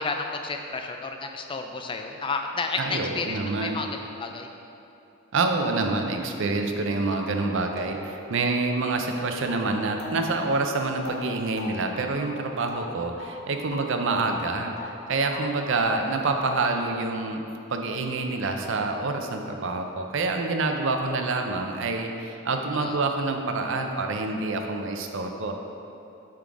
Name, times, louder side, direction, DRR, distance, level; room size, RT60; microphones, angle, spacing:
voice 1, 0.0-3.9 4.2-4.5 22.7-23.0, left 4 dB, 25° left, 4 dB, 0.3 m, -31 dB
voice 2, 2.8-3.8 5.3-17.4 17.7-25.5, right 3 dB, 60° right, 4 dB, 0.6 m, -27 dB
sound 1, 6.5-6.6 7.1-13.4 13.7-15.0 15.3-16.7, left 3 dB, 50° left, 0.7 m, -42 dB
7.5 x 3.8 x 4.7 m, 2.9 s
head